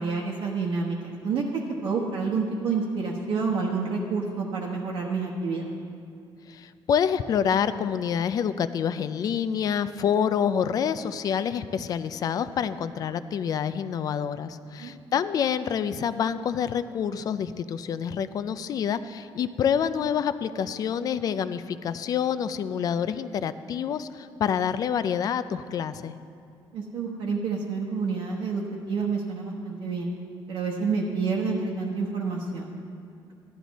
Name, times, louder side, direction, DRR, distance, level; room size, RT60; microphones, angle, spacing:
voice 1, 0.0-1.4 1.8-5.6 14.8-14.9 26.7-30.1 30.5-32.7, right 4 dB, 70° right, -3 dB, 1.2 m, -28 dB
voice 2, 6.5-26.1, left 8 dB, 45° left, 13 dB, 0.4 m, -27 dB
14.0 x 12.0 x 4.1 m, 2.5 s
cardioid pair, 175°, 9 cm